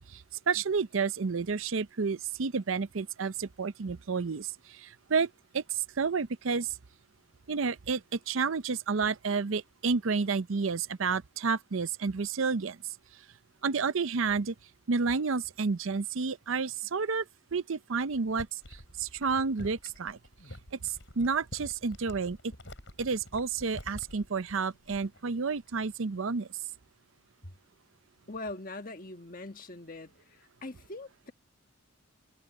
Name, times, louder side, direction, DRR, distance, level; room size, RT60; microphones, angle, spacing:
voice 1, 0.0-6.8 7.5-12.8 13.6-14.5 14.9-17.3 17.5-20.2 20.7-22.5 23.0-26.5, right 5 dB, 75° right, 0.6 m, -30 dB
sound 1, 18.3-25.3 25.6-25.9, left 1 dB, 60° left, 7.3 m, -48 dB
voice 2, 28.3-31.3, left 2 dB, 40° left, 1.5 m, -42 dB
head